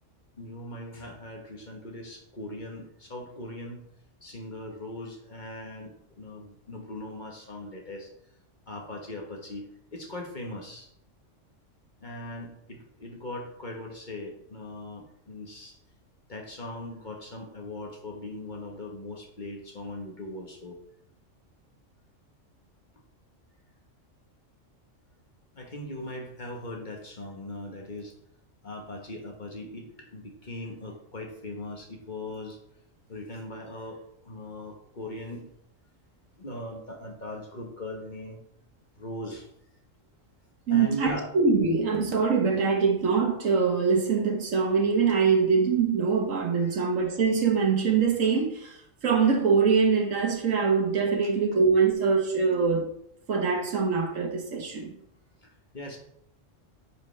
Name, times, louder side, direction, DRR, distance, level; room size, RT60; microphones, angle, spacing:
voice 1, 0.4-3.8 4.2-8.1 8.7-10.9 12.0-15.7 16.3-20.8 25.5-28.1 28.6-32.6 33.1-35.5 36.4-38.4 39.0-39.5 40.7-41.3 46.6-46.9 55.4-56.0, left 1 dB, 40° left, 1.4 m, -39 dB
voice 2, 40.7-48.8 49.0-52.9 53.3-54.9, right 5 dB, 80° right, 1.7 m, -23 dB
9.8 x 5.1 x 3.3 m
omnidirectional pair, 1.3 m